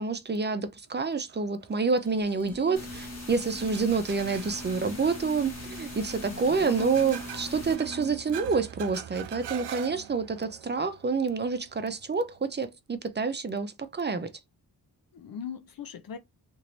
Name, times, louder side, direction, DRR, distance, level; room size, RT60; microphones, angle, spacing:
voice 1, 0.0-14.3, right 4 dB, 25° right, 0.6 m, -28 dB
sound 1, 1.3-12.6, right 11 dB, 75° right, 0.5 m, -45 dB
sound 2, 2.0-8.5, left 1 dB, 5° left, 1.1 m, -44 dB
sound 3, 2.8-7.8, left 2 dB, 40° left, 1.1 m, -43 dB
voice 2, 6.3-6.9 15.1-16.2, left 7 dB, 55° left, 0.6 m, -39 dB
2.8 x 2.6 x 3.1 m
cardioid pair, 50°, 41 cm